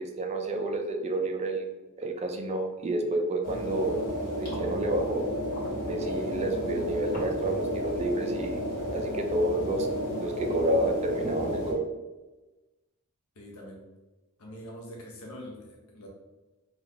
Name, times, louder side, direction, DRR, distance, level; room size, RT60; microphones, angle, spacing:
voice 1, 0.0-1.6 2.0-4.0 4.4-5.3 5.8-8.6 8.9-9.9 10.2-11.8, right 1 dB, 30° right, 3 dB, 0.4 m, -29 dB
sound 1, 3.4-11.7, equal, 45° left, 1.3 m, -32 dB
voice 2, 13.4-13.8 14.4-16.1, equal, 70° left, -1 dB, 0.6 m, -44 dB
2.8 x 2.3 x 3.6 m, 1.1 s
head